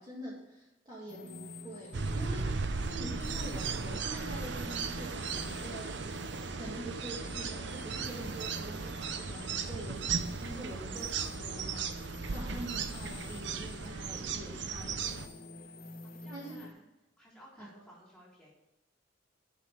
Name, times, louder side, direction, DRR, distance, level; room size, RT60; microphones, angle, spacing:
voice 1, 0.0-6.0 6.6-15.3 16.3-16.6 17.6-17.8, right 1 dB, 20° right, -7 dB, 2.0 m, -45 dB
sound 1, 1.1-16.7, left 2 dB, 50° left, 1.0 m, -49 dB
sound 2, 1.9-15.3, right 5 dB, 65° right, 0.7 m, -36 dB
voice 2, 16.0-16.8 17.2-18.5, equal, 5° left, -5 dB, 3.6 m, -56 dB
7.4 x 5.8 x 7.3 m, 0.94 s
head